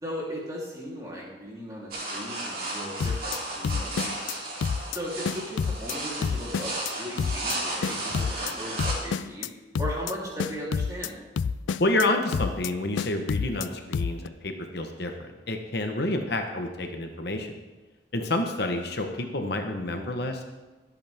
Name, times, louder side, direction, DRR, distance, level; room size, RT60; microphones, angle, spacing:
voice 1, 0.0-4.3 4.9-9.5 9.8-11.1, equal, 20° right, -5 dB, 3.4 m, -37 dB
sound 1, 1.9-8.9, right 2 dB, 50° right, 3.8 m, -34 dB
sound 2, 3.0-3.4 3.6-4.3 4.6-5.0 5.2-5.9 6.2-6.9 7.2-7.6 7.8-8.5 8.8-9.5 9.7-10.1 10.4-11.1 11.4-12.1 12.3-12.7 13.0-13.7 13.9-14.3, left 6 dB, 75° left, 0.4 m, -28 dB
voice 2, 11.8-17.6 18.1-20.4, left 2 dB, 55° left, 4 dB, 1.1 m, -29 dB
22.0 x 8.4 x 3.6 m, 1.2 s
head